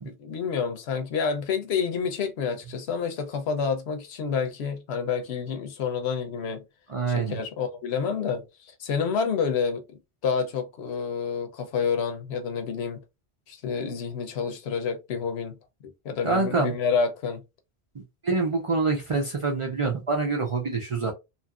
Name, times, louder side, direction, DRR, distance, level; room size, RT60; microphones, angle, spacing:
voice 1, 0.0-6.6 7.1-9.8 10.2-13.0 13.5-15.5 15.8-17.4, left 6 dB, 80° left, 0.9 m, -28 dB
voice 2, 6.9-7.4 16.2-16.7 18.2-21.1, right 3 dB, 45° right, 0.4 m, -26 dB
2.8 x 2.5 x 2.3 m
omnidirectional pair, 1.1 m